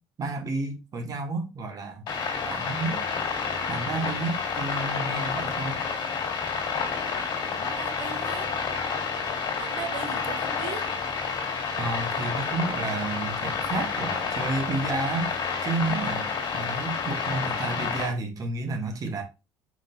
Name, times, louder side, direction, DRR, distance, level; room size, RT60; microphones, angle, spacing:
voice 1, 0.2-2.0 2.4-3.0 3.7-5.8 11.7-15.3 15.6-16.3 16.5-19.2, right 3 dB, 40° right, 1.1 m, -31 dB
sound 1, 2.1-18.1, left 5 dB, 55° left, 2.0 m, -29 dB
voice 2, 7.5-8.5 9.6-11.0, right 8 dB, 80° right, 0.8 m, -39 dB
4.8 x 3.9 x 2.6 m
cardioid pair, 105°, 9 cm